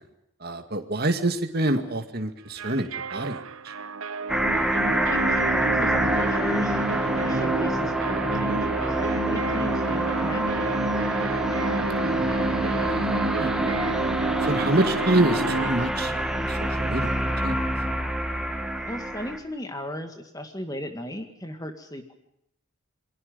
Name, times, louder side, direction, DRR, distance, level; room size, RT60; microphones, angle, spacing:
voice 1, 0.4-3.4 12.0-12.9 13.4-13.5 14.4-17.1 17.4-17.6, right 1 dB, 45° right, 6 dB, 2.3 m, -27 dB
sound 1, 2.6-15.7, right 4 dB, 75° right, 0.9 m, -30 dB
sound 2, 4.3-19.4, right 1 dB, 5° right, 2.0 m, -26 dB
voice 2, 5.0-6.8 7.1-10.8 18.8-22.1, left 1 dB, 15° left, 7 dB, 2.0 m, -36 dB
28.5 x 22.5 x 5.3 m, 0.79 s
head